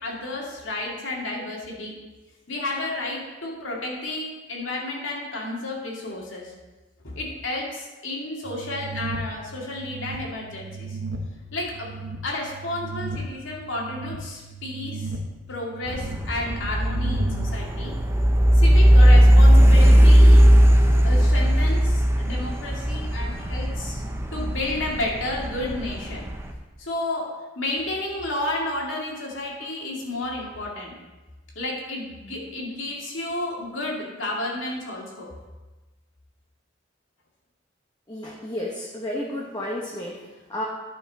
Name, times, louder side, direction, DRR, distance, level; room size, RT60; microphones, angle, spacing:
voice 1, 0.0-1.9 2.5-6.5 7.0-11.0 11.5-11.9 12.2-15.1 15.5-17.9 18.5-20.5 21.0-24.0 24.3-26.2 26.8-27.3 27.6-30.9 31.6-35.3, left 2 dB, 90° left, -3 dB, 2.3 m, -31 dB
sound 1, 8.4-17.6, right 3 dB, 85° right, 1.0 m, -35 dB
sound 2, 15.9-26.5, equal, 15° right, 0.6 m, -17 dB
voice 2, 38.1-40.7, left 1 dB, 20° left, -3 dB, 1.0 m, -32 dB
11.0 x 5.9 x 4.1 m, 1.2 s
head